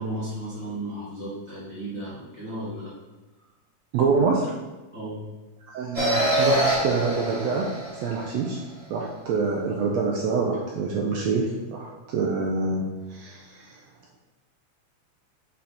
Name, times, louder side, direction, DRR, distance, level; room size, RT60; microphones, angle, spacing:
voice 1, 0.0-2.9 4.9-5.2, right 1 dB, 80° left, -9 dB, 0.6 m, -34 dB
voice 2, 3.9-4.5 5.7-7.7 8.0-8.6 8.9-12.8 13.1-13.8, right 4 dB, 80° right, 0 dB, 1.6 m, -26 dB
sound 1, 5.9-8.5, right 1 dB, 40° right, 0.9 m, -25 dB
6.4 x 3.8 x 4.2 m, 1.1 s
omnidirectional pair, 3.6 m